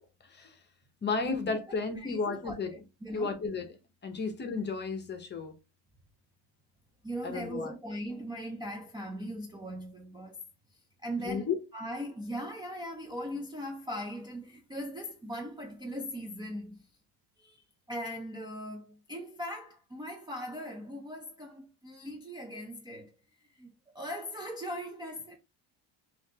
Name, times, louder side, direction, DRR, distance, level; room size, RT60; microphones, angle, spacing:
voice 1, 1.0-2.7 3.1-3.7 4.0-5.5 7.2-7.7 11.2-11.6, left 4 dB, 25° left, 0.8 m, -33 dB
voice 2, 2.0-3.4 7.0-10.4 10.7-16.9 17.4-23.1 23.4-25.4, equal, 10° right, 0.5 m, -40 dB
5.6 x 2.5 x 2.8 m
cardioid pair, 135°, 46 cm